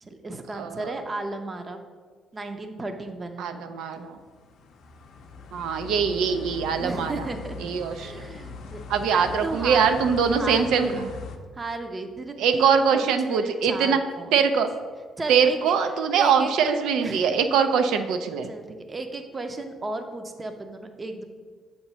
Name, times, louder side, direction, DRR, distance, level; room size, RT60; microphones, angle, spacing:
voice 1, 0.0-1.8 2.3-4.1 6.8-7.6 7.9-10.0 10.4-11.0 11.5-14.3 15.2-15.8 16.2-17.4 18.4-21.2, right 2 dB, 25° right, 6 dB, 0.5 m, -34 dB
voice 2, 0.5-0.9 3.4-4.2 5.5-7.2 7.6-8.3 8.9-11.1 12.4-14.0 14.3-14.7 15.3-18.5, right 6 dB, 85° right, 8 dB, 0.4 m, -23 dB
sound 1, 4.1-11.4, left 4 dB, 65° left, 0.5 m, -40 dB
7.2 x 3.0 x 5.4 m, 1.5 s
cardioid pair, 135°, 0 cm